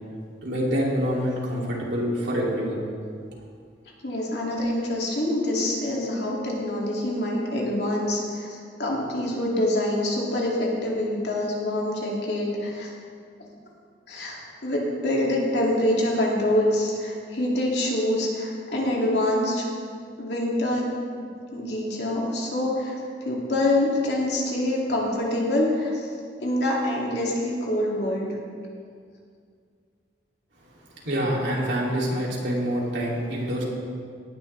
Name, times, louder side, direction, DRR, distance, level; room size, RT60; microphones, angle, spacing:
voice 1, 0.4-2.8 31.0-33.6, equal, 75° right, -4 dB, 2.9 m, -26 dB
voice 2, 4.0-12.9 14.1-19.6 20.2-26.1 26.4-28.3, left 1 dB, 70° left, -3 dB, 2.6 m, -25 dB
18.0 x 10.5 x 3.4 m, 2.2 s
head